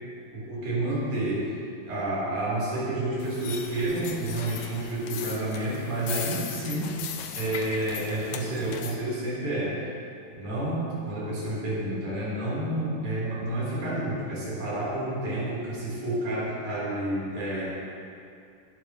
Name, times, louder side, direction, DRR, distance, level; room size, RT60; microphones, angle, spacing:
voice 1, 0.3-1.5 1.9-7.1 7.4-9.8 10.4-17.7, right 1 dB, 80° right, -7 dB, 5.7 m, -30 dB
sound 1, 3.2-9.0, left 7 dB, 75° left, 1.5 m, -38 dB
20.5 x 11.5 x 3.1 m, 2.5 s
omnidirectional pair, 3.9 m